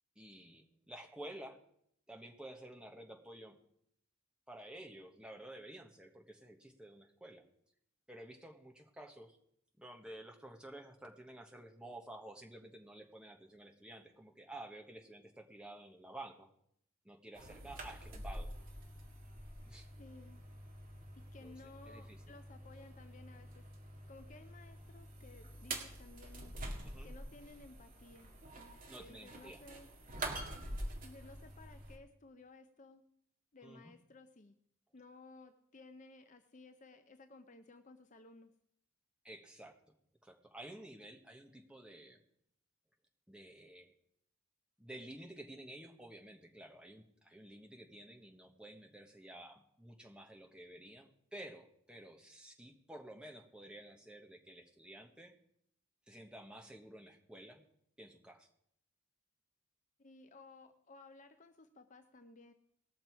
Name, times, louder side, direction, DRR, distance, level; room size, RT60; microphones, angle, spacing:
voice 1, 0.1-1.6 2.1-3.6 4.5-7.4 8.1-9.4 9.8-16.5 17.0-18.5 19.7-19.9 21.4-21.5 21.8-22.2 26.8-27.1 28.9-29.6 33.6-33.9 39.2-39.8 40.2-42.2 43.3-43.9 44.8-55.3 56.1-57.6 58.0-58.5, right 1 dB, 5° right, 2 dB, 1.4 m, -52 dB
sound 1, 17.4-32.0, right 1 dB, 40° right, 1.9 m, -47 dB
voice 2, 20.0-20.4 21.1-23.7 24.1-26.5 27.0-29.9 31.0-33.0 33.5-34.6 34.9-38.5 60.0-62.5, left 3 dB, 35° left, 8 dB, 0.7 m, -57 dB
19.5 x 6.6 x 4.6 m, 0.71 s
head